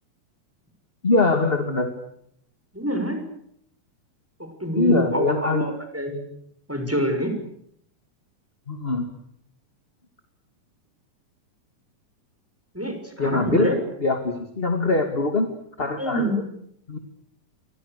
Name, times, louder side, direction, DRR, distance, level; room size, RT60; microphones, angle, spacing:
voice 1, 1.0-1.9 4.8-5.7 8.7-9.1 13.2-13.7 14.0-15.5 15.8-16.3 16.9-17.0, left 3 dB, 20° left, 6 dB, 2.0 m, -22 dB
voice 2, 2.7-3.2 4.4-6.2 6.7-7.3 12.7-13.8 16.0-16.4, equal, 5° right, 5 dB, 6.0 m, -26 dB
29.5 x 25.0 x 6.8 m, 0.71 s
omnidirectional pair, 4.1 m